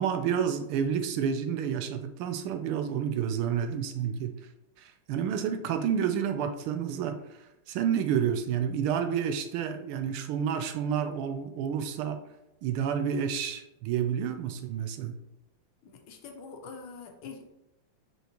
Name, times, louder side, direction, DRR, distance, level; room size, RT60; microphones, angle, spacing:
voice 1, 0.0-4.4 4.8-12.2 12.6-15.2, right 8 dB, 85° right, 8 dB, 1.5 m, -30 dB
voice 2, 15.8-17.5, left 5 dB, 75° left, 4 dB, 1.6 m, -44 dB
6.0 x 5.5 x 3.0 m, 0.91 s
omnidirectional pair, 2.3 m